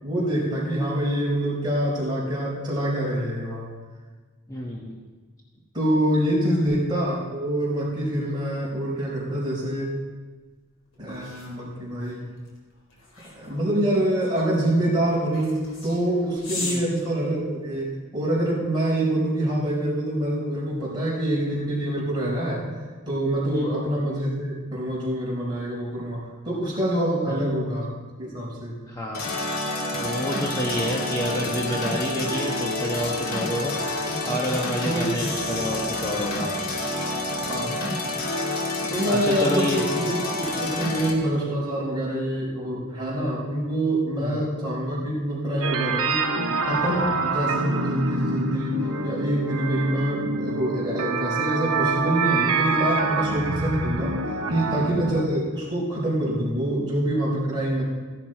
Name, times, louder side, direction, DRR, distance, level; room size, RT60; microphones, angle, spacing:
voice 1, 0.0-3.7 5.7-10.0 11.0-12.2 13.4-22.7 23.1-27.9 28.2-28.8 34.8-35.3 37.5-37.7 38.9-46.3 46.6-54.2 54.5-57.8, right 1 dB, 20° right, -6 dB, 4.5 m, -26 dB
voice 2, 4.5-5.0 6.4-6.6 16.6-16.8 23.5-23.7 27.3-27.4 28.9-29.3 30.0-33.7 34.2-36.5 39.1-39.8 44.2-44.5, equal, 15° left, -2 dB, 1.1 m, -29 dB
sound 1, 10.4-17.9, left 2 dB, 60° left, 3.5 m, -40 dB
sound 2, 29.1-41.1, left 2 dB, 85° left, 2.0 m, -28 dB
sound 3, 45.6-55.2, right 3 dB, 75° right, 1.0 m, -26 dB
15.5 x 11.0 x 4.5 m, 1.4 s
head